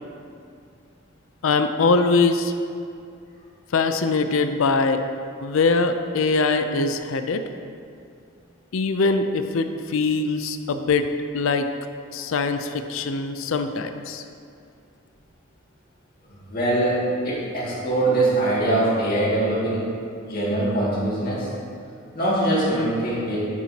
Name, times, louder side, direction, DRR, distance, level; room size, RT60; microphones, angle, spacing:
voice 1, 1.4-2.5 3.7-5.0 5.4-7.4 8.7-11.1 11.3-11.7 12.1-14.2, left 3 dB, 75° left, 8 dB, 0.5 m, -22 dB
voice 2, 16.5-19.9 20.3-21.5 22.1-23.5, right 1 dB, 45° left, -7 dB, 2.2 m, -22 dB
11.0 x 7.1 x 2.9 m, 2.4 s
head